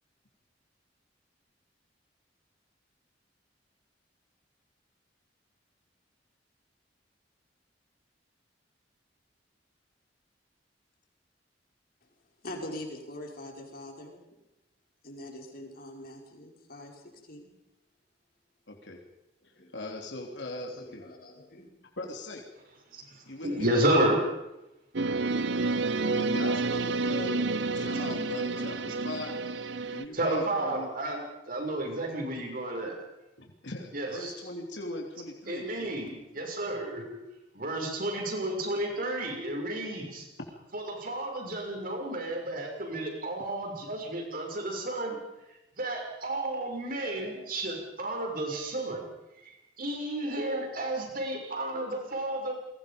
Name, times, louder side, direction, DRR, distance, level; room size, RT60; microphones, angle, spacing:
voice 1, 12.4-14.2 15.0-17.5 19.4-19.7 20.5-21.7, left 1 dB, 55° left, 1 dB, 5.4 m, -43 dB
voice 2, 18.7-19.0 19.4-21.1 22.0-22.4 23.3-23.8 26.2-29.4 29.9-30.9 33.4-36.4, left 1 dB, 75° left, 0 dB, 3.3 m, -40 dB
voice 3, 22.9-24.2 29.8-33.0 33.9-34.3 35.5-37.0 37.5-40.3 40.7-45.2 45.8-49.0 49.4-52.5, right 1 dB, 50° right, 1 dB, 6.6 m, -32 dB
sound 1, 24.9-30.0, right 3 dB, 75° right, 1.0 m, -29 dB
29.0 x 21.5 x 5.4 m, 0.94 s
head